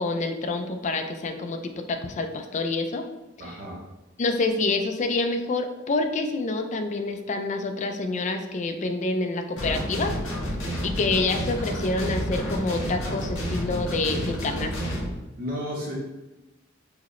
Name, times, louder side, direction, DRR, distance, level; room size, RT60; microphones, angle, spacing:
voice 1, 0.0-3.0 4.2-10.1 10.8-15.0, left 3 dB, 35° left, 6 dB, 0.3 m, -27 dB
voice 2, 3.4-3.8 15.4-16.0, equal, 45° right, -3 dB, 0.7 m, -32 dB
sound 1, 9.6-15.1, equal, 85° left, 1.1 m, -30 dB
4.7 x 2.1 x 3.0 m, 1.0 s
head